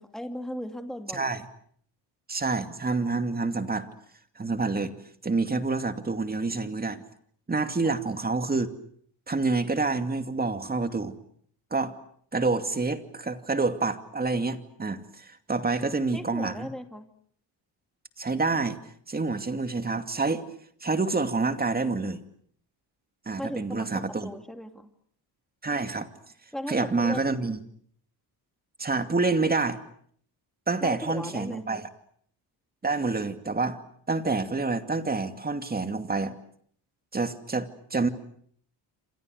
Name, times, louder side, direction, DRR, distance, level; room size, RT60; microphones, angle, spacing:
voice 1, 0.0-1.3 16.1-17.1 23.4-24.9 26.5-27.3 30.8-31.8, equal, ahead, 6 dB, 2.6 m, -37 dB
voice 2, 1.1-1.5 2.3-3.9 4.4-4.9 5.2-7.0 7.5-8.7 9.3-11.2 11.7-11.9 12.3-16.7 18.2-18.8 19.1-20.5 20.8-22.2 23.3-24.3 25.6-26.1 26.7-27.6 28.8-29.8 30.7-31.9 32.8-33.8 34.1-36.4 37.1-38.1, right 3 dB, 20° right, 8 dB, 2.5 m, -27 dB
28.5 x 26.5 x 6.6 m, 0.62 s
cardioid pair, 100°, 42 cm